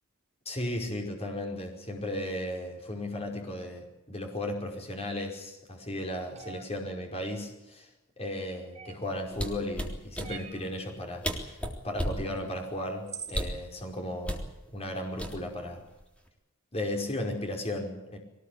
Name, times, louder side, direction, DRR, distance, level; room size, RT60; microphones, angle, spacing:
voice 1, 0.5-7.9 8.2-11.6 11.8-14.5 14.7-15.8 16.7-18.2, left 1 dB, 30° left, 2 dB, 5.2 m, -35 dB
sound 1, 6.3-6.7 8.7-9.2 10.2-10.7 12.4-12.5 13.1-13.5, right 6 dB, 30° right, 2.8 m, -43 dB
sound 2, 9.3-10.3 11.0-11.1 11.2-12.2 13.3-13.6 14.2-14.5 15.2-15.7 16.0-16.3, equal, 5° left, 3.5 m, -33 dB
23.0 x 19.5 x 8.6 m, 0.95 s
head